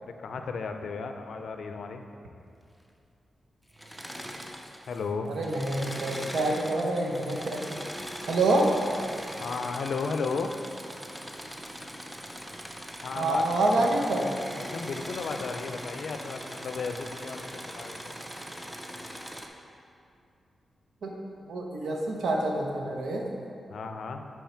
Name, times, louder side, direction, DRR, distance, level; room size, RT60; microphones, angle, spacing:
voice 1, 0.0-2.0 4.9-5.3 9.4-10.5 13.0-13.6 14.6-18.2 23.7-24.3, left 4 dB, 75° left, 6 dB, 0.4 m, -34 dB
Engine / Mechanisms, 3.7-5.0 5.3-19.5, equal, 5° right, 0.5 m, -40 dB
voice 2, 5.3-7.7 8.3-8.7 13.1-14.4 21.0-21.1 21.5-23.3, right 2 dB, 85° right, 0 dB, 0.8 m, -27 dB
5.7 x 4.7 x 4.4 m, 2.6 s
wide cardioid pair, 100°, 0 cm